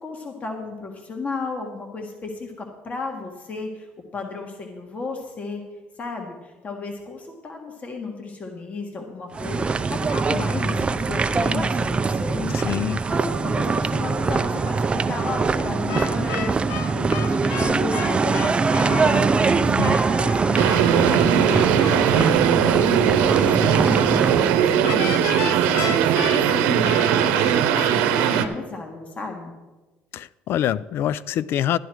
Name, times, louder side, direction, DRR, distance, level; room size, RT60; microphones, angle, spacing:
voice 1, 0.0-3.9 4.1-5.6 6.0-29.5, left 3 dB, 35° left, 1.7 m, -34 dB
sound 1, 9.3-24.6, right 4 dB, 25° right, 0.5 m, -23 dB
voice 2, 12.5-13.0 19.8-20.0 30.1-31.8, left 11 dB, 60° left, 0.3 m, -25 dB
sound 2, 15.9-22.4 24.8-28.5, left 8 dB, 85° left, 0.8 m, -34 dB
sound 3, 20.6-28.5, right 9 dB, 90° right, 0.9 m, -19 dB
12.5 x 10.0 x 4.6 m
cardioid pair, 100°, 4 cm